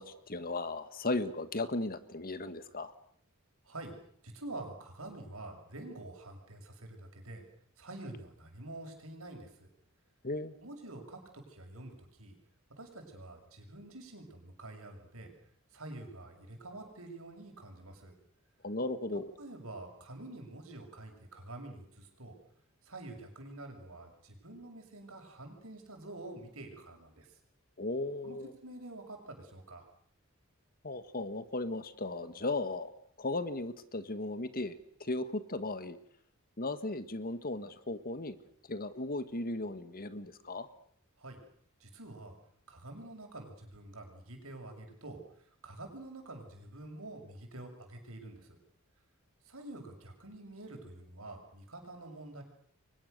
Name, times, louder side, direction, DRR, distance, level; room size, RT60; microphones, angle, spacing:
voice 1, 0.0-2.9 10.2-10.5 18.6-19.3 27.8-28.5 30.8-32.9 33.2-36.0 36.6-38.4 38.7-40.7, left 2 dB, 45° left, 11 dB, 1.7 m, -36 dB
voice 2, 4.2-7.4 7.8-9.7 10.6-12.3 12.8-15.3 15.7-18.1 19.4-22.4 22.9-27.3 28.2-28.4 28.6-29.8 41.2-41.4 41.8-42.4 42.7-45.2 45.6-48.6 49.5-52.4, right 2 dB, 75° right, 3 dB, 6.7 m, -47 dB
30.0 x 23.5 x 6.8 m, 0.63 s
head